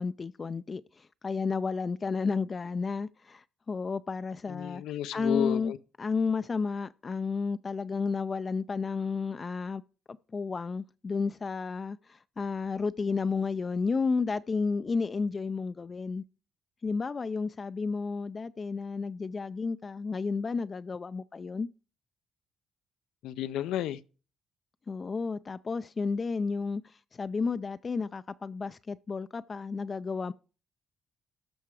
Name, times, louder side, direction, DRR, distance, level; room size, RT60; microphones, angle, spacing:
voice 1, 0.0-4.8 5.1-5.7 6.0-9.8 10.3-16.2 16.8-21.7 24.9-26.8 27.2-30.3, left 4 dB, 35° left, 0.4 m, -32 dB
voice 2, 4.5-5.8 23.2-24.0, left 11 dB, 90° left, 0.5 m, -32 dB
13.0 x 5.7 x 4.8 m
cardioid pair, 90°, 0 cm